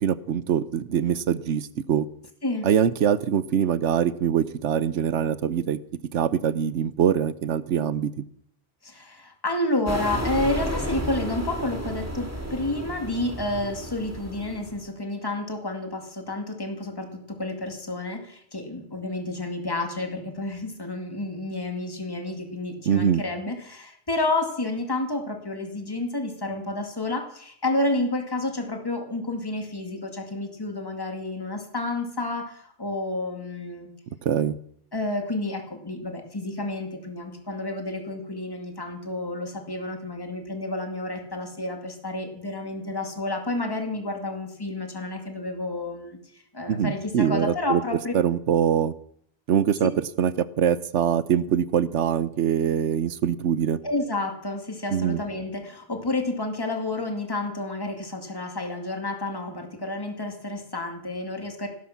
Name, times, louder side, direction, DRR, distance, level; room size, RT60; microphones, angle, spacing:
voice 1, 0.0-2.1 2.6-5.8 6.1-8.1 22.9-23.2 34.2-34.6 46.7-47.8 48.1-48.9 49.5-49.9 50.2-53.8 54.9-55.2, right 8 dB, 90° right, 16 dB, 1.1 m, -23 dB
voice 2, 8.8-33.9 34.9-48.1 53.8-61.7, left 2 dB, 20° left, 4 dB, 2.2 m, -30 dB
sound 1, 9.9-14.9, right 1 dB, 15° right, 2.4 m, -32 dB
17.0 x 12.5 x 5.8 m, 0.66 s
omnidirectional pair, 1.2 m